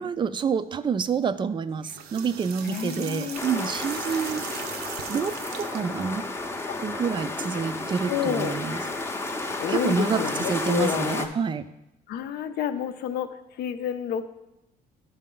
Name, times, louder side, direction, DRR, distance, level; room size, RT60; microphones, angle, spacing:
voice 1, 0.0-4.4 5.1-6.3 6.8-8.8 9.7-11.6, right 6 dB, 30° right, 13 dB, 0.3 m, -28 dB
sound 1, 1.7-6.0, right 7 dB, 70° right, 0.6 m, -39 dB
voice 2, 2.6-3.4 6.7-6.8 8.1-8.5 9.6-11.3 12.1-14.3, left 9 dB, 70° left, 10 dB, 0.6 m, -29 dB
sound 2, 3.3-11.3, left 2 dB, 15° left, 0.6 m, -32 dB
11.0 x 4.2 x 3.8 m, 0.90 s
cardioid pair, 110°, 17 cm